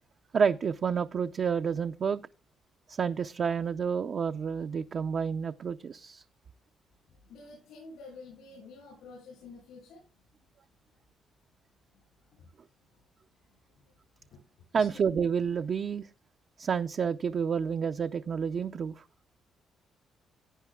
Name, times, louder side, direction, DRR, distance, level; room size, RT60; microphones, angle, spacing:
voice 1, 0.3-2.2 2.9-6.2 14.7-16.1 16.6-19.0, right 6 dB, 50° right, 0.5 m, -29 dB
voice 2, 7.2-10.0 12.3-12.5 13.4-13.6 14.3-14.4 14.8-14.9, left 3 dB, 85° left, 7.1 m, -49 dB
16.5 x 9.1 x 2.3 m
cardioid pair, 90°, 0 cm